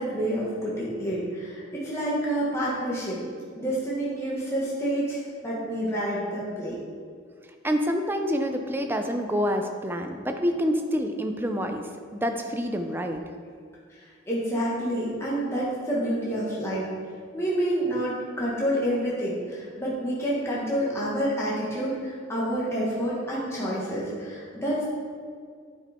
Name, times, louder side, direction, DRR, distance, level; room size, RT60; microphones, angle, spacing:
voice 1, 0.0-3.2 3.5-6.8 13.9-16.9 17.3-24.8, equal, 15° left, -7 dB, 1.5 m, -28 dB
voice 2, 7.6-13.2, equal, 10° right, 5 dB, 0.5 m, -27 dB
9.5 x 5.3 x 4.3 m, 2.1 s
head